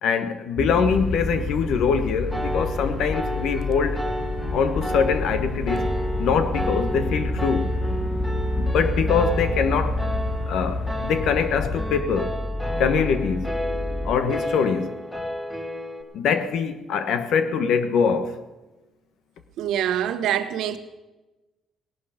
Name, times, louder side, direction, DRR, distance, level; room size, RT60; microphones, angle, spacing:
voice 1, 0.0-4.1 4.5-5.9 6.2-7.7 8.5-10.0 10.5-12.4 12.8-13.6 14.0-14.9 16.1-18.4, left 6 dB, 75° left, 1.2 m, -23 dB
sound 1, 0.6-14.2, equal, 10° right, 3.1 m, -29 dB
sound 2, 0.8-11.9, left 6 dB, 50° left, 0.8 m, -34 dB
Piano, 2.3-16.0, equal, 5° left, 2.0 m, -32 dB
voice 2, 19.6-20.8, right 10 dB, 80° right, 1.1 m, -25 dB
18.0 x 11.5 x 5.1 m
cardioid pair, 115°, 0 cm